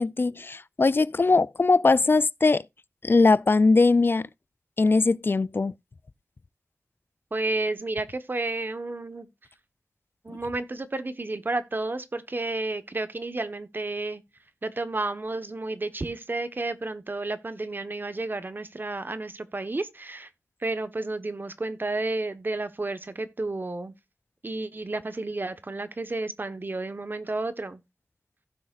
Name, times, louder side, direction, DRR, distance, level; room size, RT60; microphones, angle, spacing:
voice 1, 0.0-2.6 3.0-4.3 4.8-5.7, left 3 dB, 55° left, 0.4 m, -21 dB
voice 2, 7.3-9.3 10.2-14.2 14.6-20.3 20.6-23.9 24.4-27.8, right 2 dB, 50° right, 1.3 m, -31 dB
16.0 x 6.3 x 2.5 m
wide cardioid pair, 60°, 5 cm